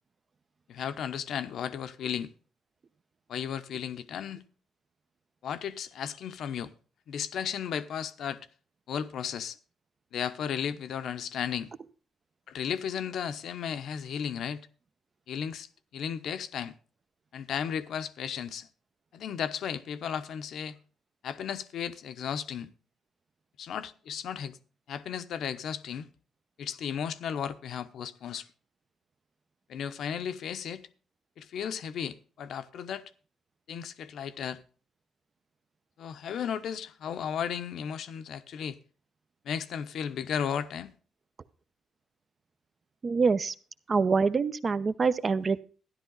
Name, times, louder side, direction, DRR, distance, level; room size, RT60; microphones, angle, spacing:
voice 1, 0.7-2.3 3.3-4.4 5.4-6.7 7.1-8.4 8.9-9.6 10.1-11.7 12.5-14.7 15.3-15.7 15.9-16.7 17.3-18.7 19.1-20.8 21.2-22.7 23.6-24.6 24.9-26.1 26.6-28.5 29.7-30.9 31.4-33.0 33.7-34.6 36.0-38.8 39.4-40.9, left 8 dB, 70° left, 0.9 m, -34 dB
voice 2, 43.0-43.5 43.9-45.6, right 5 dB, 40° right, 0.8 m, -25 dB
13.0 x 11.0 x 4.0 m
cardioid pair, 90°, 0 cm